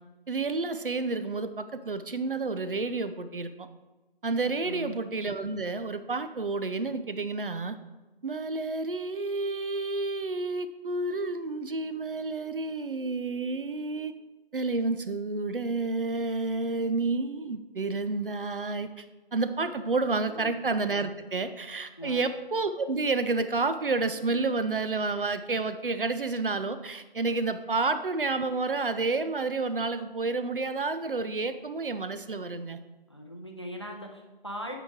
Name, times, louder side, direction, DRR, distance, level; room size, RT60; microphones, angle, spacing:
voice 1, 0.3-3.7 4.2-7.8 8.2-14.1 14.5-19.1 19.3-32.8, right 3 dB, 65° right, 10 dB, 0.6 m, -30 dB
voice 2, 4.6-5.0 20.3-20.5 22.0-22.2 33.1-34.7, equal, 30° left, 2 dB, 0.6 m, -40 dB
8.8 x 4.9 x 3.7 m, 1.2 s
figure-of-eight pair, 170°, 30 cm